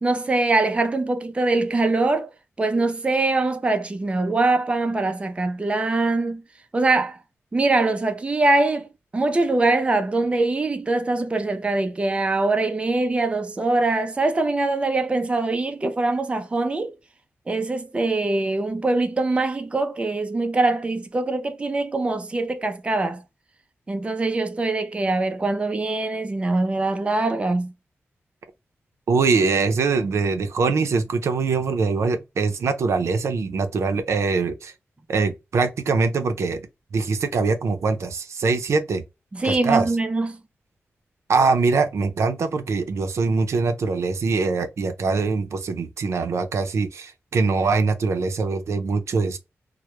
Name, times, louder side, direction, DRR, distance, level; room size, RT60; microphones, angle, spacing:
voice 1, 0.0-2.3 2.6-6.4 6.7-7.2 7.5-16.9 17.5-23.2 23.9-27.7 39.3-40.4, right 2 dB, 25° right, 0.4 m, -23 dB
voice 2, 29.1-34.7 35.1-36.6 36.9-39.0 39.4-39.9 41.3-49.4, right 4 dB, 75° right, 0.5 m, -23 dB
2.1 x 2.1 x 2.9 m
cardioid pair, 75°, 5 cm